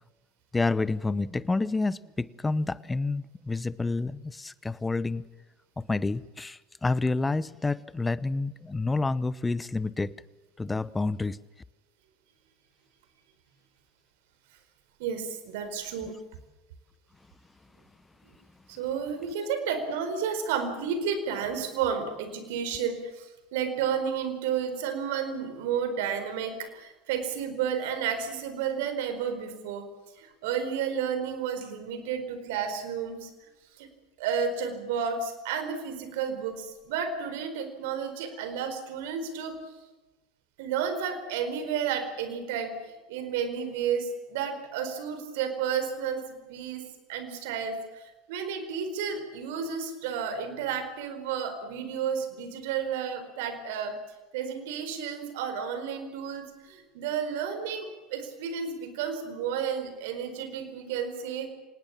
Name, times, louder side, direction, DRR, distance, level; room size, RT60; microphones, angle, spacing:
voice 1, 0.5-5.3 5.8-10.1 10.6-11.4, left 3 dB, 15° left, 0.9 m, -29 dB
voice 2, 15.0-16.1 18.7-29.9 30.2-33.3 33.8-33.9 34.2-39.6 40.6-46.8 47.1-54.0 54.3-61.5, right 7 dB, 70° right, 4.4 m, -32 dB
26.0 x 19.0 x 7.4 m
hypercardioid pair, 75°, 0 cm